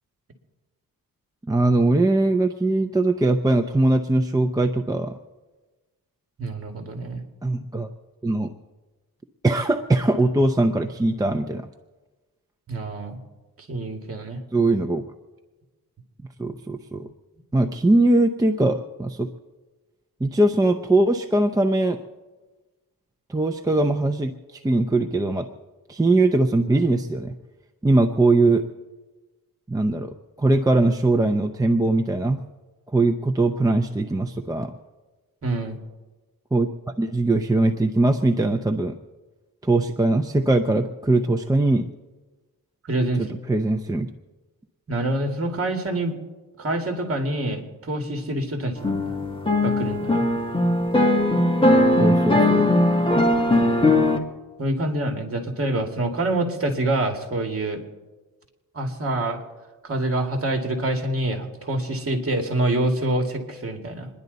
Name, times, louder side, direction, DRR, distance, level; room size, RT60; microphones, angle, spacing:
voice 1, 1.5-5.1 7.4-7.9 8.2-8.5 9.4-11.7 14.5-15.0 16.4-17.1 17.5-19.3 20.2-22.0 23.3-25.5 25.9-27.3 27.8-28.6 29.7-30.1 30.4-32.4 32.9-34.7 36.5-36.7 37.0-38.9 39.6-41.9 43.2-44.1 52.0-52.7, right 2 dB, 10° right, 5 dB, 0.6 m, -21 dB
voice 2, 6.4-7.2 12.7-13.2 13.6-14.4 35.4-35.8 42.9-43.4 44.9-46.2 46.6-49.2 49.6-50.2 54.6-57.8 58.7-59.4 59.8-64.1, right 1 dB, 40° right, 4 dB, 2.3 m, -26 dB
sound 1, 48.8-54.2, left 1 dB, 15° left, 1.5 m, -19 dB
27.0 x 11.0 x 4.1 m, 1.2 s
cardioid pair, 110°, 36 cm